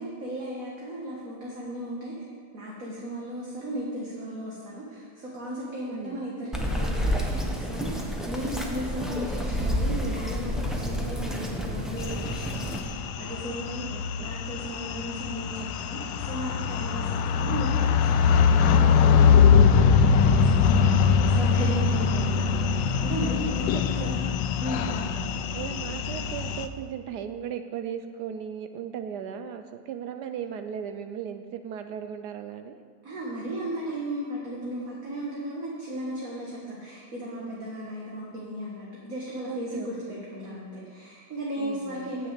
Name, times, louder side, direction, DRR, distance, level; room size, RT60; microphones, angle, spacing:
voice 1, 0.0-2.1 2.5-13.8 14.2-24.3 24.6-25.1 33.0-42.3, equal, 50° right, -4 dB, 1.8 m, -36 dB
voice 2, 5.9-6.2 13.9-14.4 17.4-17.6 21.9-22.5 23.6-23.7 24.0-24.1 25.5-32.8 39.5-40.2 40.5-41.0 41.6-42.1, right 8 dB, 70° right, 8 dB, 1.0 m, -37 dB
Bird vocalization bird call bird song, 6.5-12.8, equal, ahead, 0.4 m, -29 dB
sound 1, 12.1-26.7, left 6 dB, 75° left, 1.2 m, -22 dB
7.7 x 6.6 x 8.1 m, 2.1 s
omnidirectional pair, 2.1 m